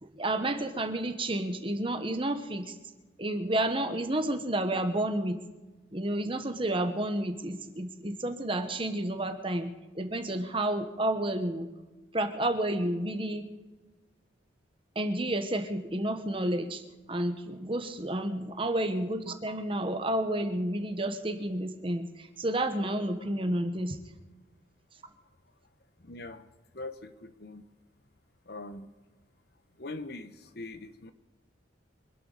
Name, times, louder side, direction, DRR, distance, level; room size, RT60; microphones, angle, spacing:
voice 1, 0.0-2.8 3.2-5.4 5.9-11.7 12.1-13.5 14.9-16.8 17.1-24.0, right 1 dB, 25° right, 8 dB, 1.2 m, -30 dB
voice 2, 26.0-26.5 26.7-27.6 28.5-28.9 29.8-31.1, left 2 dB, 55° left, 10 dB, 1.0 m, -42 dB
25.0 x 12.5 x 4.0 m, 1.2 s
head